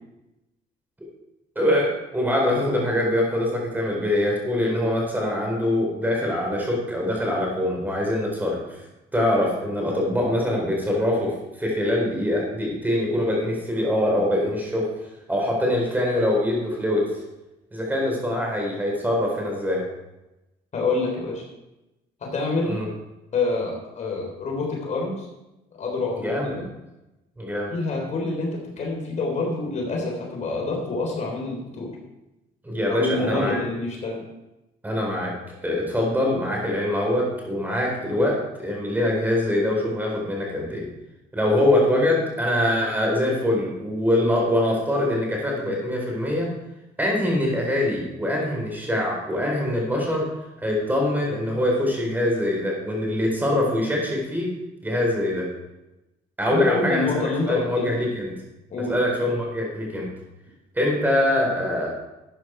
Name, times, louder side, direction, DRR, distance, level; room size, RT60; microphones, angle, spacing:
voice 1, 1.5-8.6 9.1-14.9 15.3-17.1 17.7-19.8 22.6-22.9 26.2-26.6 27.4-27.7 32.6-33.6 34.8-35.3 35.6-40.8 41.3-46.5 47.0-50.3 50.6-54.5 54.8-55.5 56.4-58.3 58.9-60.1 60.7-61.9, left 1 dB, 10° right, -1 dB, 4.6 m, -23 dB
voice 2, 20.7-21.4 22.2-22.8 23.3-25.3 25.7-26.7 27.7-32.0 32.9-34.2 56.5-57.9 58.7-58.9, left 3 dB, 45° left, -1 dB, 3.8 m, -27 dB
12.5 x 9.0 x 4.7 m, 0.96 s
cardioid pair, 110°, 17 cm